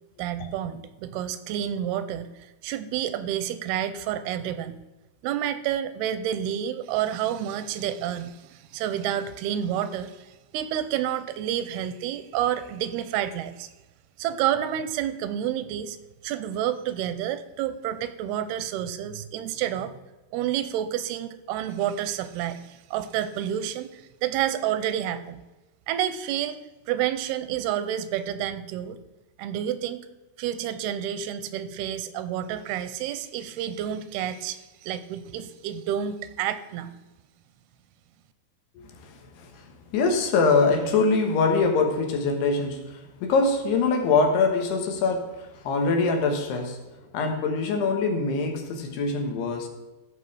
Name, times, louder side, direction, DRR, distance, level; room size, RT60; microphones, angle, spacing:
voice 1, 0.2-4.8 5.2-13.7 14.2-16.0 16.2-19.9 20.3-25.4 25.9-29.0 29.4-30.0 30.4-36.9, right 10 dB, 85° right, 2.6 m, -29 dB
voice 2, 38.8-46.8 47.1-49.7, left 4 dB, 90° left, 3.4 m, -24 dB
15.5 x 6.0 x 4.8 m
omnidirectional pair, 4.6 m